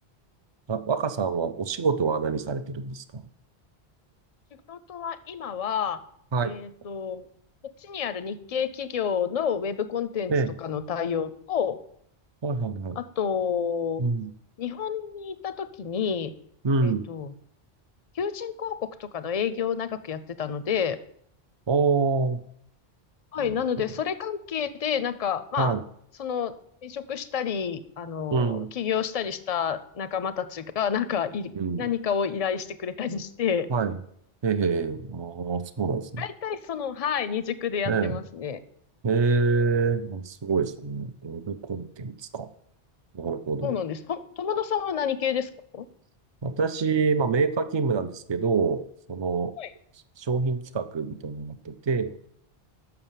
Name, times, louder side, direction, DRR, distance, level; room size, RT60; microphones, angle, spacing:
voice 1, 0.7-3.2 6.3-6.5 10.3-10.5 12.4-13.0 14.0-14.3 16.6-17.1 21.7-22.4 23.4-23.8 25.6-25.8 28.3-28.7 31.5-31.9 33.7-34.0 34.4-36.2 37.9-38.2 39.0-42.5 43.1-43.8 46.4-48.8 49.1-49.5 50.2-52.1, right 4 dB, 35° right, 10 dB, 0.4 m, -26 dB
voice 2, 4.7-6.0 6.4-7.3 7.8-10.3 10.6-11.8 13.0-14.0 14.6-16.3 16.8-17.3 18.2-21.0 23.3-25.7 26.2-26.5 26.8-31.5 31.8-33.7 36.2-38.6 43.6-45.9 49.6-49.7, left 7 dB, 45° left, 14 dB, 0.5 m, -29 dB
6.9 x 6.0 x 7.3 m, 0.68 s
omnidirectional pair, 1.1 m